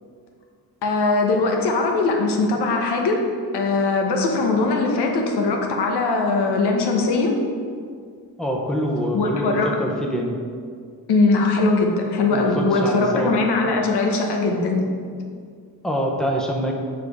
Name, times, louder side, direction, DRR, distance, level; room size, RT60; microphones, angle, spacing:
voice 1, 0.8-3.2 3.5-7.3 9.1-9.7 11.1-14.9, left 3 dB, 80° left, 2 dB, 1.2 m, -20 dB
voice 2, 8.4-10.4 12.3-13.3 13.6-13.8 15.8-16.7, equal, ahead, 0 dB, 0.9 m, -25 dB
7.6 x 5.0 x 4.7 m, 2.1 s
cardioid pair, 120°, 39 cm